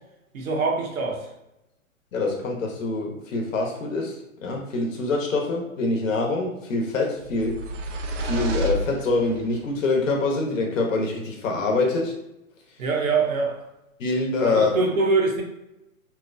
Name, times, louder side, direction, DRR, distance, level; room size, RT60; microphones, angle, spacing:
voice 1, 0.3-1.3 12.8-13.6 14.4-15.4, right 4 dB, 85° right, 1 dB, 0.8 m, -23 dB
voice 2, 2.1-7.6 8.2-12.1 14.0-14.7, left 3 dB, 65° left, 1 dB, 0.9 m, -25 dB
sound 1, 7.2-9.6, right 1 dB, 60° right, 0.5 m, -30 dB
2.8 x 2.2 x 2.5 m, 0.90 s
hypercardioid pair, 135°, 41 cm